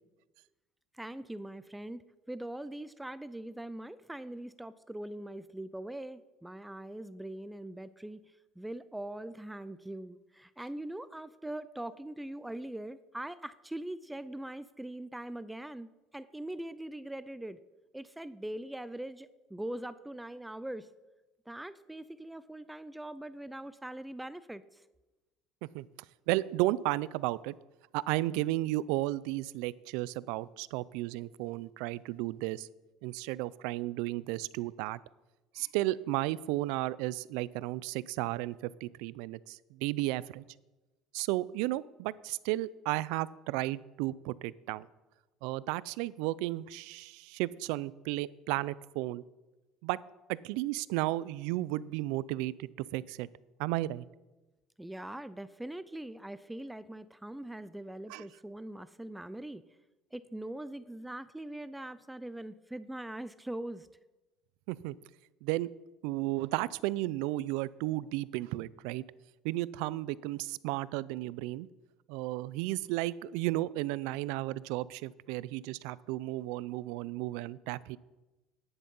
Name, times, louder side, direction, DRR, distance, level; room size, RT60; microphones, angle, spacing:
voice 1, 0.9-8.2 8.6-17.6 17.9-20.9 21.5-24.8 54.8-59.6 60.1-63.9, right 1 dB, 5° right, 15 dB, 0.4 m, -42 dB
voice 2, 26.3-27.5 27.9-32.7 33.0-35.0 35.5-40.4 41.1-44.9 45.4-49.2 49.8-50.0 50.3-53.3 53.6-54.1 58.1-58.2 64.7-65.0 65.4-65.7 66.0-69.0 69.4-71.7 72.1-78.0, right 17 dB, 80° right, 20 dB, 0.4 m, -33 dB
11.0 x 10.0 x 5.4 m, 1.1 s
cardioid pair, 120°, 0 cm